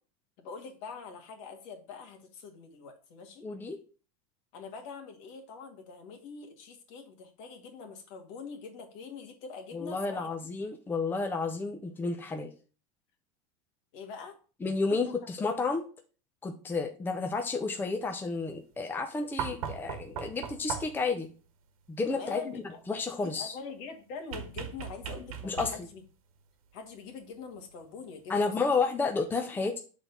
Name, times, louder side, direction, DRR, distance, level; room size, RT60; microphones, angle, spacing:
voice 1, 0.4-3.5 4.5-10.3 13.9-14.4 14.9-15.0 22.1-26.0 26.7-28.8 29.2-29.3, left 5 dB, 60° left, 4 dB, 1.9 m, -44 dB
voice 2, 3.4-3.8 9.7-12.5 14.6-15.8 16.4-21.3 21.9-22.4 22.9-23.6 25.4-25.8 28.3-29.8, left 4 dB, 10° left, 4 dB, 0.7 m, -31 dB
sound 1, 19.4-21.1 24.3-26.1 27.6-27.7, right 8 dB, 85° right, 1.3 m, -38 dB
6.1 x 4.0 x 5.9 m, 0.36 s
supercardioid pair, 135°, 18 cm